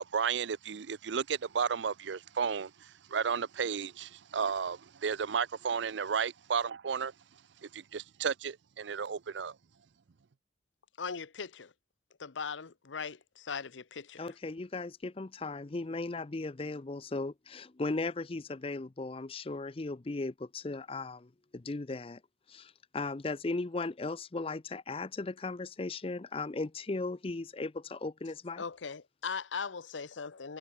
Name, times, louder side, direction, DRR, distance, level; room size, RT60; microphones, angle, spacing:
voice 1, 0.0-7.1 7.6-9.6, right 6 dB, 75° right, 0.5 m, -33 dB
voice 2, 11.0-11.7 12.2-14.3 28.6-30.6, left 5 dB, 90° left, 0.8 m, -39 dB
voice 3, 14.2-22.2 22.5-28.6, left 3 dB, 30° left, 0.5 m, -37 dB
head